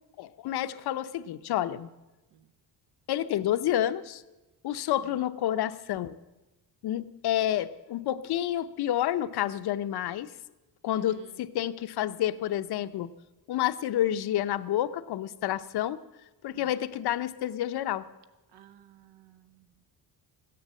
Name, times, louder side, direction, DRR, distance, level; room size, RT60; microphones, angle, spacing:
voice 1, 0.2-1.9 3.1-4.2 4.6-6.2 6.8-10.3 10.8-13.1 13.5-16.0 16.4-18.1, left 12 dB, 70° left, 13 dB, 0.7 m, -29 dB
voice 2, 10.9-11.4 16.5-16.8 18.5-19.8, right 11 dB, 85° right, 13 dB, 0.9 m, -55 dB
15.0 x 10.5 x 7.5 m, 1.1 s
cardioid pair, 175°, 40 cm